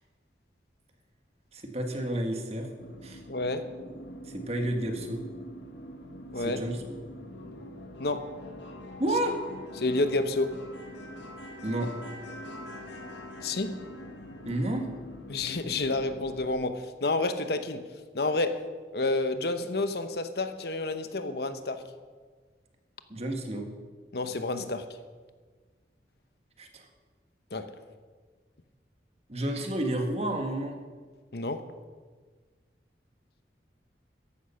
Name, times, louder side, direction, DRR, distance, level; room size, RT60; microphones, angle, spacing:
voice 1, 1.5-2.7 3.0-3.2 4.3-5.2 6.4-7.0 9.0-9.4 11.6-11.9 14.4-14.9 23.1-23.7 26.6-26.9 29.3-30.8, right 1 dB, 35° right, 4 dB, 1.7 m, -31 dB
sound 1, 2.8-16.5, left 1 dB, 85° left, 1.8 m, -44 dB
voice 2, 3.3-3.7 6.3-6.6 8.0-8.3 9.8-10.6 13.4-13.8 15.3-17.8 18.1-18.6 18.9-21.8 24.1-24.9 27.5-27.7 31.3-31.7, left 2 dB, 60° left, 10 dB, 0.9 m, -29 dB
14.5 x 11.5 x 5.6 m, 1.5 s
head